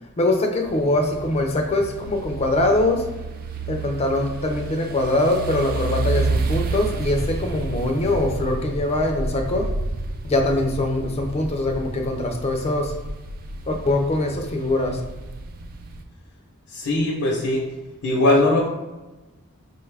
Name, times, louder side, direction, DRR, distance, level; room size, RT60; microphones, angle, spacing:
voice 1, 0.2-3.1 3.7-9.7 10.2-12.9 13.7-15.0, left 2 dB, 30° left, 4 dB, 0.4 m, -23 dB
sound 1, 0.7-16.0, right 3 dB, 40° right, 0.3 m, -30 dB
voice 2, 16.7-17.7 18.0-18.7, left 1 dB, 75° left, -1 dB, 0.6 m, -20 dB
5.1 x 2.3 x 3.2 m, 1.1 s
head